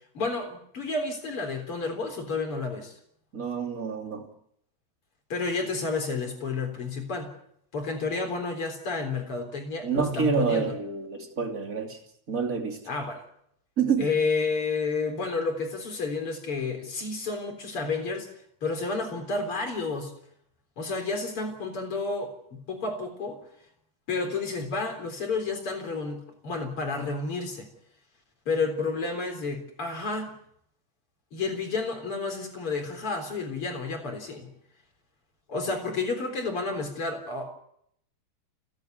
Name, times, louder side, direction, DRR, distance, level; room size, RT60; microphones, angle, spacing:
voice 1, 0.1-3.0 5.3-7.3 7.7-10.8 12.9-13.3 14.0-18.3 18.6-20.1 20.8-23.4 24.1-26.2 26.4-27.7 28.5-30.3 31.3-34.5 35.5-37.5, left 4 dB, 30° left, 4.2 m, -30 dB
voice 2, 3.3-4.3 9.8-12.0 12.3-12.8 13.8-14.1, right 5 dB, 25° right, 2.4 m, -27 dB
29.5 x 11.0 x 9.4 m
omnidirectional pair, 5.0 m